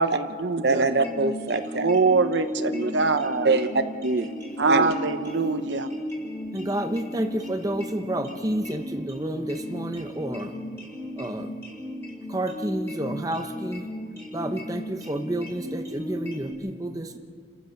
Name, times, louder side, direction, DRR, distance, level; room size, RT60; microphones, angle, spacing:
voice 1, 0.0-0.9 1.7-3.5 4.6-5.9, right 4 dB, 85° right, 9 dB, 1.0 m, -23 dB
voice 2, 0.6-1.9 2.7-2.9 3.4-4.3 4.6-4.9, right 3 dB, 60° right, 9 dB, 0.9 m, -24 dB
sound 1, 0.8-16.5, left 1 dB, 15° left, 4.3 m, -35 dB
voice 3, 6.5-10.5 11.2-11.5 12.3-13.9 14.3-17.2, right 1 dB, 20° right, 6 dB, 0.9 m, -30 dB
29.5 x 15.0 x 5.9 m, 2.2 s
head